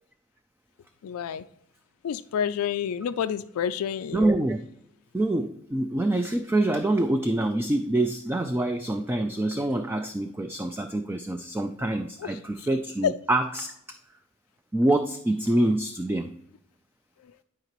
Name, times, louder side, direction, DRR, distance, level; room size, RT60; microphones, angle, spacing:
voice 1, 1.0-1.4 2.0-4.3 13.0-13.1, left 8 dB, 90° left, 0.3 m, -28 dB
voice 2, 4.1-4.6 5.1-14.0 14.7-16.3, right 1 dB, 10° right, 0.3 m, -26 dB
10.5 x 4.9 x 3.0 m
head